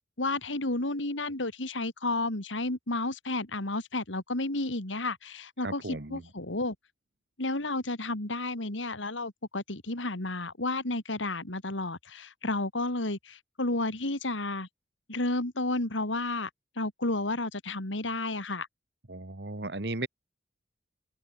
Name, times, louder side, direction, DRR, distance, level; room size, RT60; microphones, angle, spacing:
voice 1, 0.2-6.7 7.4-14.7 15.1-16.5 16.8-18.7, left 2 dB, 85° left, 3.1 m, -32 dB
voice 2, 5.6-6.3 19.1-20.1, right 2 dB, 60° right, 1.6 m, -36 dB
head